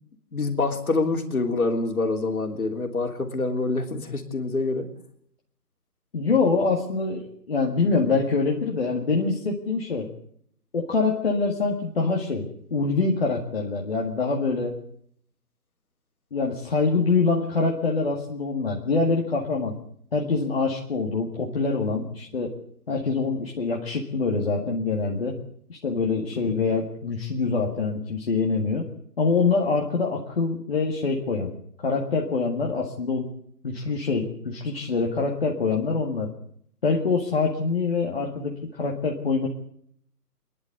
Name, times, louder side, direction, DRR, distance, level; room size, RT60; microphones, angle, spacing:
voice 1, 0.3-4.9 26.4-26.6, left 3 dB, 60° left, 4 dB, 3.4 m, -26 dB
voice 2, 6.1-10.1 10.7-14.8 16.3-19.7 20.1-22.6 22.9-25.4 25.7-28.9 29.2-31.5 31.8-33.3 33.6-36.3 36.8-39.5, left 4 dB, 40° left, -1 dB, 2.0 m, -25 dB
25.0 x 11.0 x 9.5 m, 0.66 s
figure-of-eight pair, 160°, 48 cm